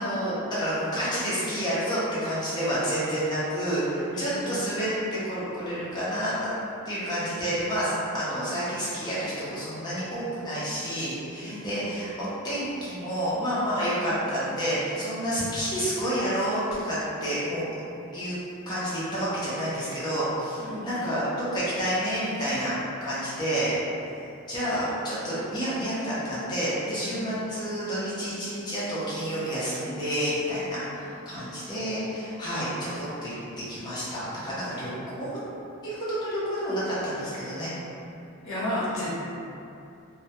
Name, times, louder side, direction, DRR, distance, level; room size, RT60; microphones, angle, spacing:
voice 1, 0.0-6.5 6.9-17.7 18.1-18.4 18.7-22.7 23.0-23.7 24.5-34.9 35.2-35.3 35.8-37.7 38.9-39.1, equal, 20° left, -10 dB, 0.6 m, -29 dB
voice 2, 4.1-4.6 11.5-12.0 20.6-21.1 27.0-27.3 38.4-39.1, left 1 dB, 60° left, -9 dB, 0.7 m, -33 dB
2.1 x 2.1 x 2.8 m, 2.7 s
head